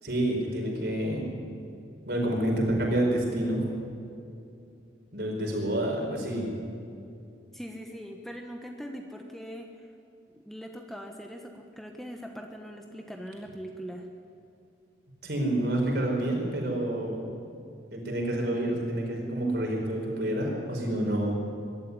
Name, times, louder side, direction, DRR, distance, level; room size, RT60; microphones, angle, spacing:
voice 1, 0.0-1.4 2.1-3.6 5.1-6.5 15.2-17.3 17.9-21.4, right 1 dB, 60° right, 0 dB, 5.3 m, -28 dB
voice 2, 7.5-9.7 10.4-14.1, equal, ahead, 2 dB, 1.2 m, -41 dB
22.5 x 13.0 x 9.9 m, 2.6 s
head